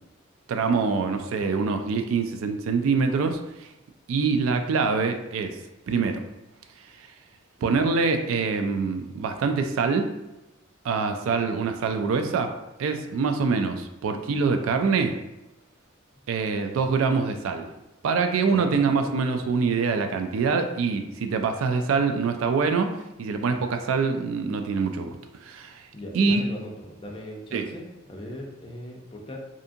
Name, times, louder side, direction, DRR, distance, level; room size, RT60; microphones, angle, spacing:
voice 1, 0.5-3.7 4.1-5.6 5.9-6.2 7.0-7.1 7.6-10.1 10.8-15.2 16.3-17.7 18.0-22.9 23.2-25.9 26.1-26.4 27.5-27.6, right 5 dB, 90° right, 6 dB, 0.3 m, -25 dB
voice 2, 18.4-19.2 25.9-29.4, left 1 dB, 25° left, 0 dB, 0.4 m, -38 dB
2.7 x 2.5 x 2.5 m, 0.97 s
head